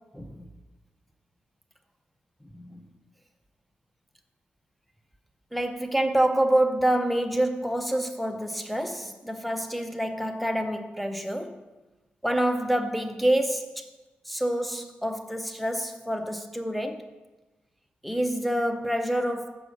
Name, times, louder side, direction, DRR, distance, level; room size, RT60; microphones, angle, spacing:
voice 1, 5.5-11.6 12.2-13.7 14.3-17.1 18.0-19.5, right 1 dB, ahead, 0.6 m, -27 dB
7.6 x 5.0 x 6.3 m
cardioid pair, 90°, 4 cm